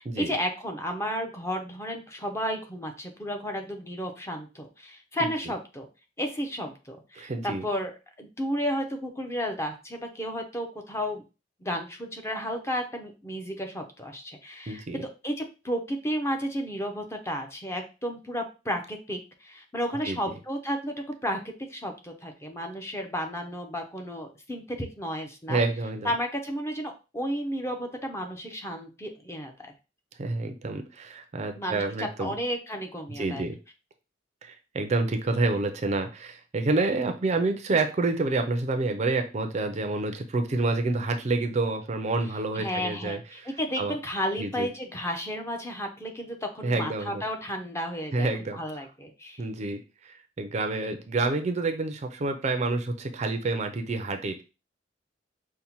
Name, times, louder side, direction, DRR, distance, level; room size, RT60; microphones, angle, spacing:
voice 1, 0.0-5.9 6.2-11.2 11.6-20.9 21.2-21.4 21.7-25.6 26.0-29.7 31.6-33.4 42.6-48.3 48.5-49.4, equal, 15° left, 3 dB, 0.6 m, -33 dB
voice 2, 7.2-7.6 14.7-15.0 20.0-20.2 25.5-26.1 30.2-32.4 33.2-33.6 34.4-43.5 43.8-43.9 44.4-44.7 46.6-47.2 48.1-48.6 49.4-54.4, right 3 dB, 35° right, 6 dB, 0.4 m, -28 dB
5.3 x 2.1 x 2.9 m, 0.30 s
head